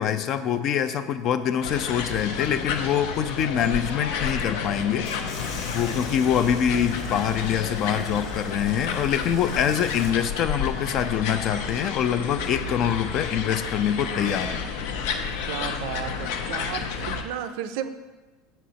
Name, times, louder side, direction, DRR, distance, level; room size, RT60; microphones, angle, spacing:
voice 1, 0.0-5.1 5.7-14.6, left 9 dB, 40° left, 11 dB, 0.4 m, -25 dB
sound 1, 1.6-17.2, left 6 dB, 70° left, 0.7 m, -31 dB
sound 2, 5.0-10.1, left 3 dB, 55° left, 1.3 m, -41 dB
voice 2, 15.5-17.9, right 10 dB, 65° right, 11 dB, 0.5 m, -33 dB
6.8 x 4.3 x 6.2 m, 1.3 s
cardioid pair, 160°, 0 cm